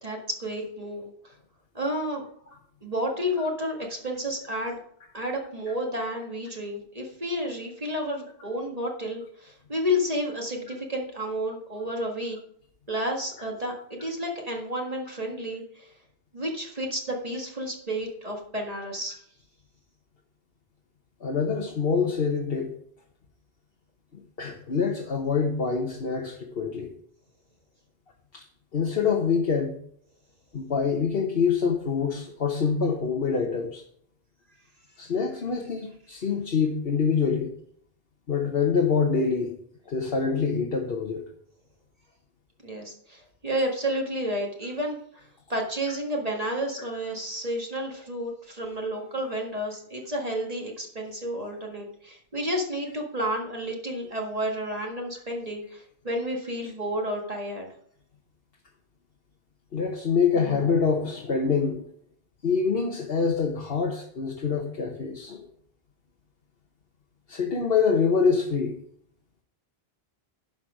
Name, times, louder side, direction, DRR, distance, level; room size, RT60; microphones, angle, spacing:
voice 1, 0.0-1.4 1.7-2.2 2.8-4.8 5.1-12.4 12.9-15.9 16.3-19.2 42.6-57.7, equal, 35° right, 0 dB, 1.8 m, -31 dB
voice 2, 21.2-22.7 24.1-26.9 28.3-28.4 28.7-29.8 30.5-33.8 35.0-37.5 38.3-39.6 39.9-41.2 59.7-61.8 62.4-65.5 67.3-68.8, left 5 dB, 65° left, 1 dB, 1.3 m, -25 dB
10.5 x 6.2 x 4.9 m, 0.66 s
omnidirectional pair, 1.1 m